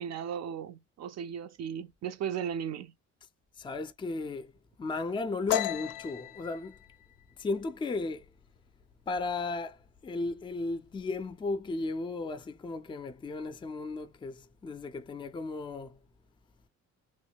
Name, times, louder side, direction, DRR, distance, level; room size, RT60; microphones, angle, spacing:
voice 1, 0.0-2.9, right 8 dB, 60° right, 0.5 m, -36 dB
voice 2, 3.6-4.5 4.8-6.8 7.4-8.3 9.1-16.0, left 3 dB, 15° left, 0.4 m, -35 dB
sound 1, 5.5-8.9 9.3-9.6 10.0-10.5 10.7-11.5, left 13 dB, 85° left, 0.4 m, -35 dB
3.1 x 2.1 x 3.3 m
cardioid pair, 90°, 30 cm